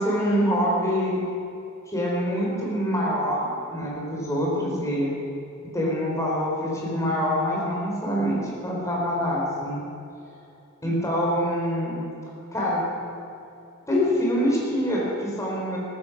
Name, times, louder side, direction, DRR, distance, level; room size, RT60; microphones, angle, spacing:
voice 1, 0.0-1.3 1.9-5.1 5.7-9.8 10.8-12.1 12.5-13.1 13.9-15.8, equal, 15° left, -4 dB, 3.8 m, -25 dB
14.5 x 14.0 x 5.9 m, 2.7 s
head